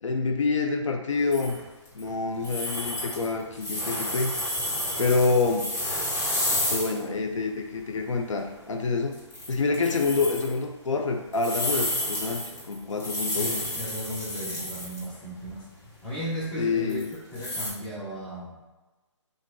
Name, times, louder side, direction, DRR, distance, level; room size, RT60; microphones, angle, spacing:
voice 1, 0.0-1.6 1.9-4.4 5.0-5.7 6.7-9.2 9.5-13.6 16.6-17.1, left 4 dB, 75° left, 4 dB, 0.5 m, -27 dB
sound 1, 1.3-2.1 2.4-7.0 7.3-7.4 8.0-8.2 8.5-8.7 9.1-10.5 11.3-15.0 15.4-15.5 16.9-17.7, left 1 dB, 45° left, 1.5 m, -31 dB
voice 2, 13.2-18.6, equal, 5° left, -7 dB, 0.5 m, -36 dB
2.5 x 2.2 x 3.8 m, 1.1 s
figure-of-eight pair, 145°, 16 cm